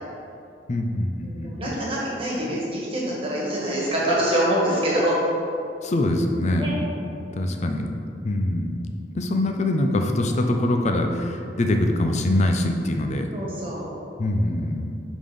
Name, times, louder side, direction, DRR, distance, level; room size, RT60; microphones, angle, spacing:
voice 1, 0.7-1.8 5.8-6.7 7.3-8.0 8.2-8.8 9.1-13.3 14.2-14.9, left 1 dB, 40° left, 4 dB, 0.5 m, -24 dB
voice 2, 1.2-5.2 6.6-6.8 13.3-13.9, right 1 dB, 30° right, -6 dB, 1.5 m, -25 dB
5.0 x 3.7 x 5.3 m, 2.6 s
head